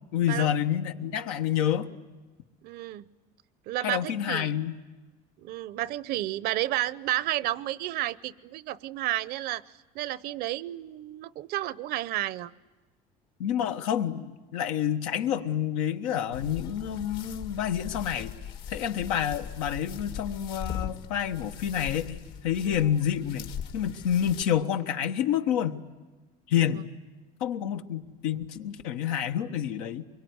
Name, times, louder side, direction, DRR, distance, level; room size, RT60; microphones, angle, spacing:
voice 1, 0.1-1.9 3.8-4.8 13.4-18.3 18.7-22.2 22.4-25.8 26.5-26.8 27.4-30.1, left 9 dB, 90° left, 6 dB, 1.3 m, -28 dB
voice 2, 2.6-3.0 3.7-4.5 5.4-9.6 9.9-12.5 22.6-22.8, right 15 dB, 60° right, 18 dB, 0.7 m, -31 dB
sound 1, 16.3-24.4, left 8 dB, 70° left, 2.1 m, -40 dB
24.0 x 23.0 x 9.5 m, 1.3 s
supercardioid pair, 110°, 18 cm